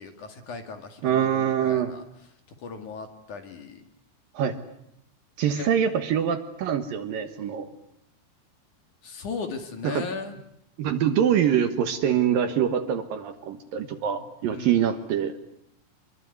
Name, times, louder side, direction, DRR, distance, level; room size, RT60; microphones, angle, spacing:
voice 1, 0.0-2.0 2.6-3.9 5.5-5.7 9.0-10.3 14.5-14.8, left 4 dB, 50° left, 6 dB, 3.2 m, -37 dB
voice 2, 1.0-1.9 4.3-4.6 5.4-7.7 9.8-10.0 10.8-15.3, right 9 dB, 65° right, 8 dB, 2.7 m, -24 dB
27.0 x 22.0 x 9.5 m, 0.75 s
omnidirectional pair, 4.9 m